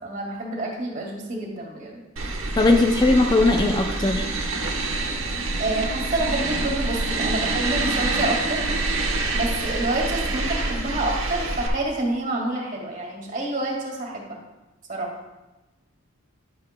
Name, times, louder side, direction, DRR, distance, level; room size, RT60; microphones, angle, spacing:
voice 1, 0.0-2.0 5.6-8.6 9.3-14.4 14.9-15.1, right 2 dB, 35° right, 0 dB, 1.9 m, -28 dB
sound 1, 2.2-11.7, right 2 dB, 70° right, 1.0 m, -26 dB
voice 2, 2.6-4.3, left 2 dB, 20° left, 3 dB, 0.4 m, -19 dB
11.0 x 8.4 x 2.2 m, 1.0 s
head